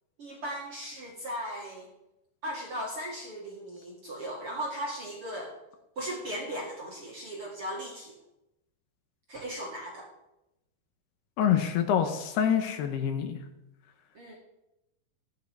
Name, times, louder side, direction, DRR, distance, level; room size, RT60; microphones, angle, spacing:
voice 1, 0.2-1.9 2.4-5.6 6.0-8.2 9.3-10.1 14.1-14.4, equal, 45° right, -2 dB, 2.0 m, -37 dB
voice 2, 11.4-13.4, left 9 dB, 75° left, 6 dB, 3.0 m, -26 dB
15.0 x 11.0 x 4.7 m, 0.91 s
omnidirectional pair, 4.9 m